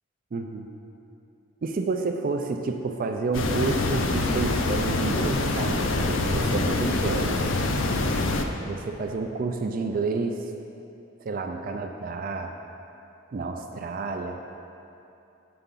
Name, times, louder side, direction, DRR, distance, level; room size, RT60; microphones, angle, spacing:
voice 1, 0.3-0.7 1.6-7.4 8.6-10.5 11.2-12.5 13.3-14.4, right 3 dB, 45° right, 4 dB, 0.3 m, -30 dB
sound 1, 3.3-8.4, left 2 dB, 65° left, 0.5 m, -25 dB
8.0 x 6.8 x 3.8 m, 2.8 s
head